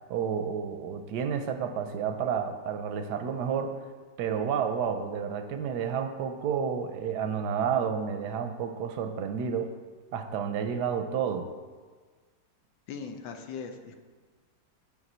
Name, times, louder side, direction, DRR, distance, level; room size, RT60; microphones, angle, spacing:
voice 1, 0.1-3.8 4.2-9.7 10.1-11.5, right 7 dB, 75° right, 7 dB, 1.0 m, -30 dB
voice 2, 12.9-14.0, left 5 dB, 80° left, 5 dB, 1.4 m, -39 dB
9.8 x 4.9 x 4.2 m, 1.5 s
omnidirectional pair, 2.1 m